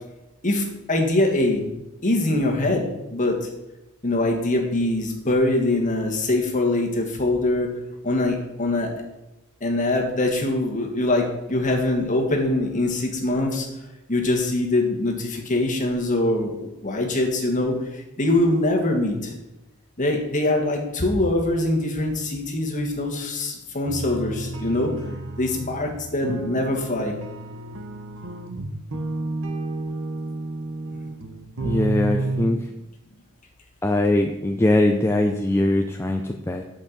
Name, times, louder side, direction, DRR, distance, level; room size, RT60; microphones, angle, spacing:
voice 1, 0.4-1.7 2.0-2.8 3.1-3.5 4.0-7.7 8.0-8.9 9.6-13.7 14.1-19.3 20.0-24.9 25.4-27.1, left 2 dB, 35° left, 0 dB, 1.7 m, -23 dB
sound 1, 23.9-32.5, right 2 dB, 60° right, 0.9 m, -31 dB
voice 2, 31.6-32.7 33.8-36.6, left 1 dB, 10° left, 4 dB, 0.4 m, -21 dB
8.7 x 5.7 x 6.8 m, 0.97 s
head